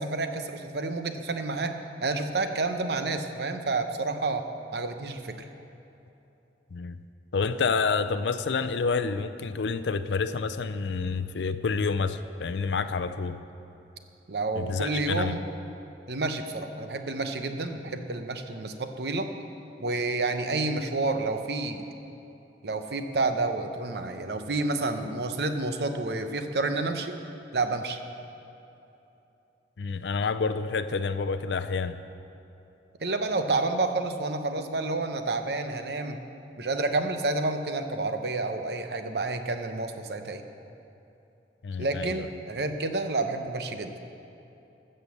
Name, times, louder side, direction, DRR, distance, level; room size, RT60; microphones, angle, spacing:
voice 1, 0.0-4.4 4.7-5.5 14.3-15.4 16.1-19.3 19.8-21.9 22.6-27.1 27.5-28.0 33.0-36.2 36.6-40.4 41.8-43.9, right 3 dB, 65° right, 7 dB, 0.8 m, -29 dB
voice 2, 7.3-13.4 14.5-15.4 29.8-32.0 41.6-42.3, left 4 dB, 80° left, 11 dB, 0.5 m, -28 dB
14.5 x 6.8 x 7.0 m, 2.9 s
head